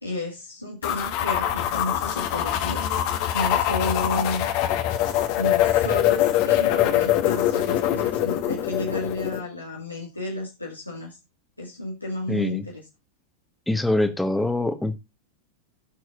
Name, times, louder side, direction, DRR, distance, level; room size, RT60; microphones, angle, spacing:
voice 1, 0.0-2.9 3.3-4.5 5.4-11.2 11.6-12.8, left 2 dB, 85° left, 2.1 m, -32 dB
sound 1, 0.8-9.4, left 12 dB, 45° left, 1.5 m, -23 dB
voice 2, 12.3-12.7 13.7-14.9, left 1 dB, 5° left, 1.5 m, -24 dB
17.5 x 6.4 x 2.5 m
figure-of-eight pair, 90°, 0 cm